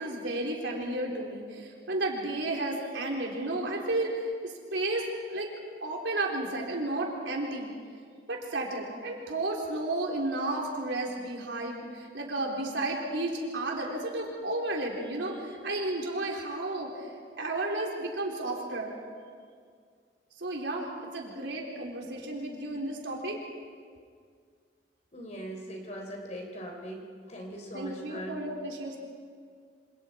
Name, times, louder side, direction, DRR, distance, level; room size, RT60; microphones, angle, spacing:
voice 1, 0.0-5.5 5.8-7.7 8.3-17.1 17.4-19.0 20.4-23.4 27.7-29.0, right 2 dB, 90° right, -1 dB, 4.0 m, -33 dB
voice 2, 25.1-28.4, right 1 dB, 40° left, 1 dB, 3.7 m, -40 dB
27.5 x 26.5 x 4.7 m, 2.1 s
head